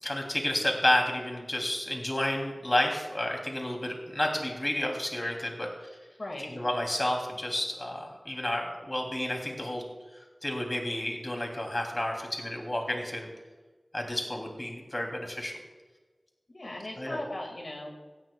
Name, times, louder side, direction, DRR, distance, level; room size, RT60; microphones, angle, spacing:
voice 1, 0.0-5.7 6.5-9.8 10.4-13.3 13.9-15.6 17.0-17.2, left 1 dB, 35° left, 2 dB, 3.0 m, -30 dB
voice 2, 6.2-6.5 16.5-18.0, left 1 dB, 60° left, 1 dB, 2.1 m, -38 dB
17.5 x 16.5 x 2.4 m, 1.3 s
wide cardioid pair, 60°, 0 cm